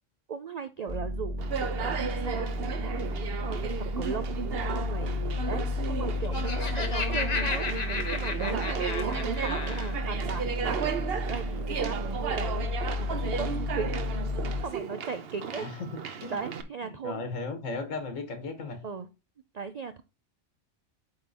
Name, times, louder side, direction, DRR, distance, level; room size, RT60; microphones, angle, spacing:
voice 1, 0.3-3.6 4.0-14.2 14.6-15.7 16.3-17.2 18.8-19.1 19.5-20.0, right 6 dB, 85° right, 0.3 m, -38 dB
sound 1, 0.9-14.6, left 2 dB, 25° right, 1.4 m, -32 dB
Conversation, 1.4-16.6, right 6 dB, 55° right, 0.9 m, -34 dB
Laughter, 6.1-9.9, left 4 dB, 35° left, 0.9 m, -34 dB
voice 2, 15.5-15.9 16.2-16.4 17.0-18.8, left 3 dB, 85° left, 1.6 m, -35 dB
8.6 x 3.8 x 4.1 m
omnidirectional pair, 1.3 m